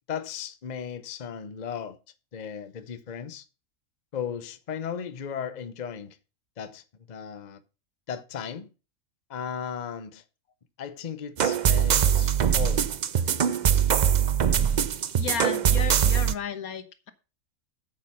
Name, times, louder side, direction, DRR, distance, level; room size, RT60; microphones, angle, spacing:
voice 1, 0.1-2.0 2.3-3.5 4.1-6.2 6.6-7.6 8.1-8.7 9.3-10.2 10.8-12.9 13.1-13.8, left 7 dB, 40° left, 0.7 m, -36 dB
sound 1, 11.4-16.3, right 8 dB, 80° right, 0.4 m, -22 dB
voice 2, 15.1-17.1, left 7 dB, 75° left, 1.7 m, -33 dB
8.9 x 7.6 x 5.6 m
omnidirectional pair, 1.5 m